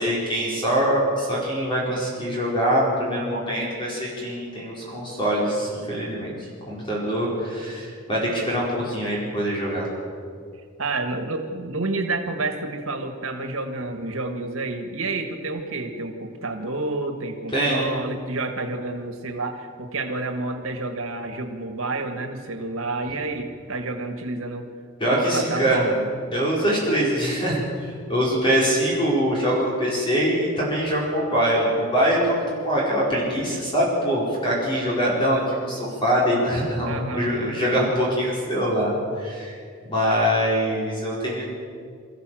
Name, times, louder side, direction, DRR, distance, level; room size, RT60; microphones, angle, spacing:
voice 1, 0.0-6.3 6.7-9.9 17.5-17.9 25.0-25.9 26.3-38.9 39.2-39.6 39.8-41.4, equal, 25° left, -5 dB, 4.8 m, -23 dB
voice 2, 10.8-24.7 25.0-26.1 36.8-37.9, right 2 dB, 85° right, 5 dB, 1.7 m, -29 dB
23.5 x 14.5 x 7.7 m, 2.2 s
head